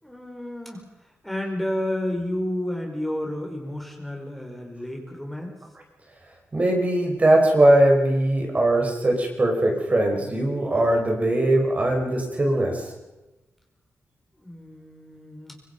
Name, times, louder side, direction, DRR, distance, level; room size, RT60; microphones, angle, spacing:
voice 1, 0.0-5.5 14.4-15.5, left 1 dB, 5° left, 1 dB, 5.0 m, -31 dB
voice 2, 6.5-12.9, right 1 dB, 25° right, 1 dB, 4.8 m, -20 dB
25.5 x 24.5 x 5.4 m, 1.0 s
wide cardioid pair, 135°, 5 cm